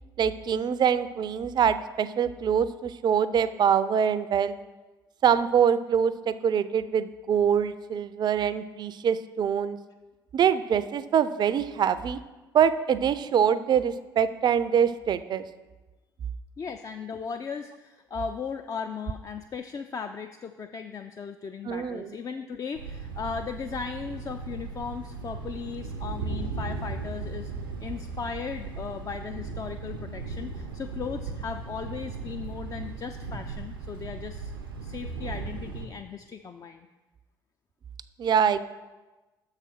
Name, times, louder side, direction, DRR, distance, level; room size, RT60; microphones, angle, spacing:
voice 1, 0.2-4.6 5.2-9.8 10.3-12.2 12.5-15.4 21.6-22.1 38.2-38.6, right 8 dB, 40° right, 14 dB, 0.4 m, -24 dB
voice 2, 16.6-27.5 27.8-34.5 34.8-36.9, left 6 dB, 30° left, 7 dB, 0.4 m, -37 dB
Thunder, 22.7-35.9, right 4 dB, 85° right, 0.6 m, -37 dB
6.6 x 4.8 x 6.0 m, 1.2 s
figure-of-eight pair, 50°, 11 cm